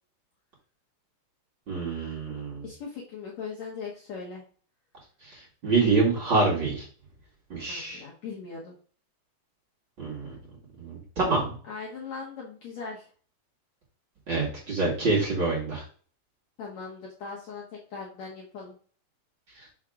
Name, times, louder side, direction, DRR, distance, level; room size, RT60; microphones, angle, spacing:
voice 1, 1.7-2.6 5.2-6.9 7.5-8.0 10.0-10.4 10.8-11.6 14.3-15.8 19.6-19.7, right 3 dB, 35° right, -6 dB, 2.6 m, -26 dB
voice 2, 2.6-4.4 7.7-8.8 11.6-13.1 16.6-18.7, left 5 dB, 60° left, -3 dB, 2.0 m, -39 dB
6.3 x 6.0 x 3.6 m, 0.43 s
omnidirectional pair, 4.3 m